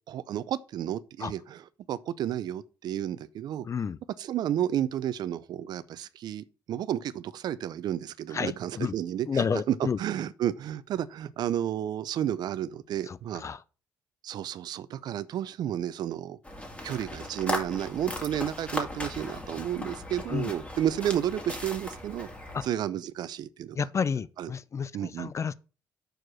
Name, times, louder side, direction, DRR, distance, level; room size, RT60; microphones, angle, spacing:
voice 1, 0.1-3.7 4.2-13.4 14.2-16.4 16.8-22.3 22.6-23.8 24.4-24.5 24.9-25.3, right 11 dB, 70° right, 0.5 m, -32 dB
voice 2, 3.6-4.0 8.3-8.9 9.3-10.0 13.1-13.6 19.3-19.4 20.3-20.5 22.5-22.6 23.7-25.5, left 6 dB, 40° left, 0.5 m, -31 dB
sound 1, 16.4-22.7, left 1 dB, 15° left, 2.4 m, -37 dB
6.4 x 4.7 x 6.3 m
supercardioid pair, 65°, 7 cm